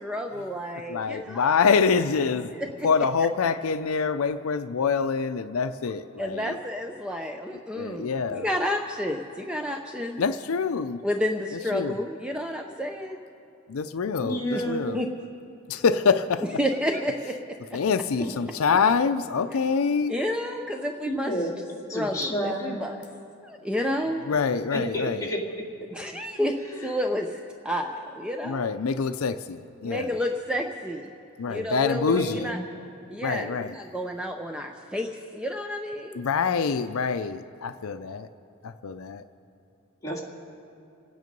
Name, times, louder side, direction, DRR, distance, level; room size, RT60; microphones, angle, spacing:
voice 1, 0.0-1.6 2.6-2.9 6.2-10.2 11.0-13.2 14.5-14.7 14.9-15.1 16.6-17.8 20.1-21.4 21.9-23.0 23.4-24.2 25.9-28.7 29.8-31.1 31.5-32.6 33.1-36.2, left 1 dB, 5° right, 3 dB, 0.5 m, -30 dB
voice 2, 0.9-2.5 2.8-6.5 7.7-8.5 10.2-11.0 11.7-12.0 13.7-15.0 15.7-16.4 17.7-20.1 24.3-25.3 28.4-30.1 31.4-32.5 33.2-33.8 36.2-38.3 38.6-39.2, left 5 dB, 75° left, 11 dB, 0.5 m, -25 dB
voice 3, 14.2-14.9 18.2-18.3 21.1-21.5 21.9-23.0 24.7-25.6 32.1-32.6 40.0-40.2, equal, 15° left, -3 dB, 2.2 m, -30 dB
27.5 x 9.4 x 5.3 m, 2.7 s
head